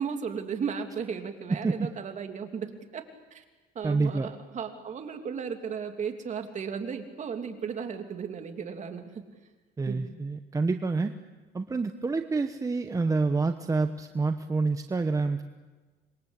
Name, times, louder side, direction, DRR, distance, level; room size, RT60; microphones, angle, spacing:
voice 1, 0.0-3.4 3.7-9.0 9.9-10.1, right 6 dB, 45° right, 5 dB, 3.1 m, -35 dB
voice 2, 1.5-1.9 3.8-4.3 9.8-11.1 11.5-15.4, right 3 dB, 20° right, 7 dB, 1.1 m, -27 dB
26.5 x 22.5 x 8.3 m, 1.3 s
cardioid pair, 110°, 17 cm